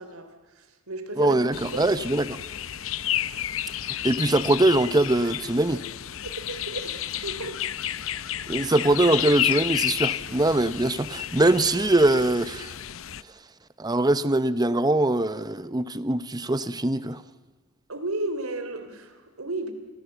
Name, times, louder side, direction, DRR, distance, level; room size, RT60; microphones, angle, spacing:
voice 1, 0.0-1.9 6.3-7.6 17.9-19.7, right 2 dB, 85° right, 3.5 m, -34 dB
voice 2, 1.2-2.4 4.0-5.8 8.5-12.7 13.8-17.2, right 2 dB, 20° right, 0.7 m, -22 dB
sound 1, 1.5-13.2, left 11 dB, 65° left, 0.7 m, -31 dB
28.5 x 21.0 x 8.1 m
head